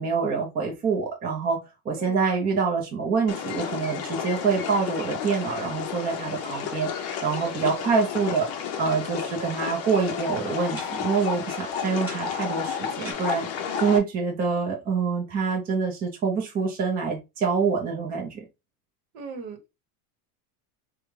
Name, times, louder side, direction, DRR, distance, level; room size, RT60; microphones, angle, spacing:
voice 1, 0.0-1.6 1.8-6.9 7.2-8.5 8.8-13.5 13.8-18.4, right 5 dB, 20° right, 0.6 m, -26 dB
sound 1, 3.3-14.0, left 7 dB, 35° left, 0.6 m, -32 dB
sound 2, 3.3-4.9 5.4-5.6 5.9-6.1 6.4-6.7 7.0-8.9 9.2-9.6 10.8-11.3 12.1-13.1, equal, 5° right, 2.1 m, -45 dB
voice 2, 19.1-19.7, right 4 dB, 55° right, 1.1 m, -38 dB
4.9 x 2.3 x 3.1 m
cardioid pair, 160°, 44 cm